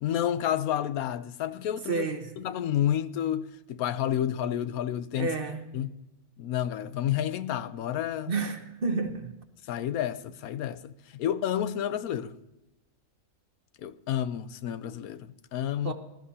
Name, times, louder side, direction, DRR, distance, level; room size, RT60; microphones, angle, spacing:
voice 1, 0.0-2.1 2.4-5.3 5.7-5.9 6.4-8.3 9.7-12.3 13.8-15.9, left 10 dB, 90° left, 1.1 m, -30 dB
voice 2, 1.8-2.4 5.2-5.7 8.3-9.3 15.8-15.9, right 4 dB, 45° right, 1.1 m, -30 dB
19.5 x 12.5 x 2.8 m
omnidirectional pair, 1.5 m